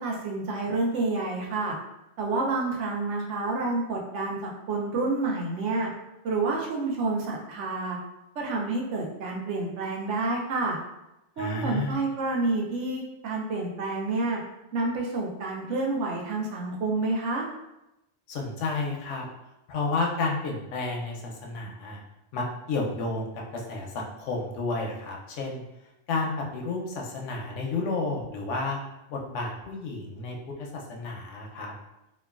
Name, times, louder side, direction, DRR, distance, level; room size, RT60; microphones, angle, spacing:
voice 1, 0.0-1.8 2.2-5.9 6.2-8.0 8.4-10.8 11.4-14.4 14.7-17.4, right 3 dB, 85° right, -1 dB, 1.0 m, -29 dB
voice 2, 11.4-12.0 18.3-19.3 19.7-22.0 22.3-25.6 26.1-28.8 29.1-31.7, left 3 dB, 90° left, 0 dB, 0.9 m, -31 dB
2.9 x 2.3 x 2.3 m, 0.91 s
omnidirectional pair, 1.2 m